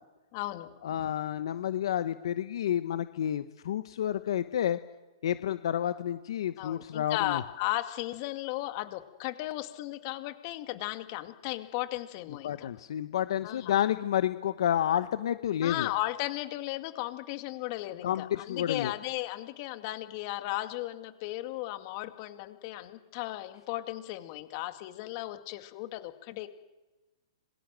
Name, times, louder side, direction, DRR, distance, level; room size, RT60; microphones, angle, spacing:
voice 1, 0.3-0.7 6.6-12.7 13.4-13.7 15.6-26.5, left 17 dB, 35° left, 10 dB, 2.1 m, -35 dB
voice 2, 0.8-4.8 5.2-7.4 12.4-15.9 18.0-18.9, left 10 dB, 60° left, 12 dB, 1.1 m, -30 dB
26.5 x 23.0 x 7.6 m, 1.1 s
hypercardioid pair, 150°, 3 cm